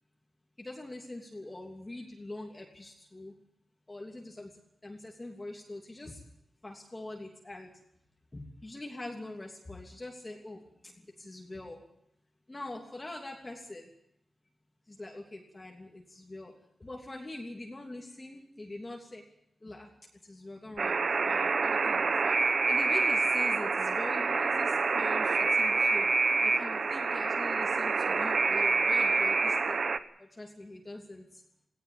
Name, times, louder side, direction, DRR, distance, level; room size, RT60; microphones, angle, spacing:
voice 1, 0.6-3.3 3.9-4.5 4.8-6.2 6.6-7.7 8.3-10.9 11.2-11.8 12.5-13.9 14.9-16.5 16.8-19.2 19.6-19.9 20.2-22.3 22.7-26.1 26.4-29.8 30.2-31.3, left 2 dB, 20° left, 0 dB, 3.0 m, -43 dB
Alarm, 20.8-30.0, right 4 dB, 50° right, 1.1 m, -27 dB
19.0 x 17.5 x 9.1 m, 0.75 s
wide cardioid pair, 125°, 0 cm